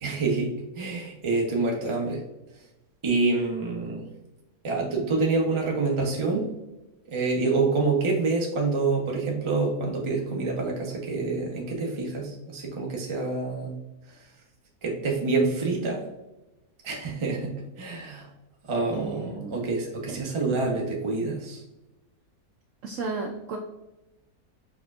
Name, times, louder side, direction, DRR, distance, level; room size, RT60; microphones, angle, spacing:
voice 1, 0.0-2.2 3.0-4.0 4.6-6.5 7.1-13.7 14.1-14.2 14.8-16.0 16.8-18.3 18.6-21.6, right 3 dB, 25° right, -1 dB, 0.6 m, -27 dB
voice 2, 18.9-19.6 20.1-20.2 22.8-23.6, right 4 dB, 70° right, 2 dB, 0.8 m, -33 dB
4.5 x 4.3 x 2.4 m, 0.98 s
omnidirectional pair, 1.7 m